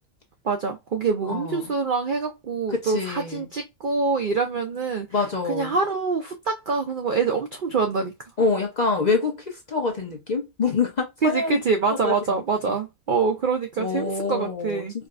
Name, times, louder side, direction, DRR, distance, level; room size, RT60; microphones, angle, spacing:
voice 1, 0.4-5.1 5.5-8.1 11.2-14.9, right 4 dB, 70° right, 0.4 m, -25 dB
voice 2, 1.2-1.7 2.7-3.4 5.1-5.8 8.4-11.6 12.0-12.4 13.8-15.1, left 4 dB, 40° left, 0.7 m, -26 dB
4.7 x 2.1 x 2.4 m
omnidirectional pair, 1.5 m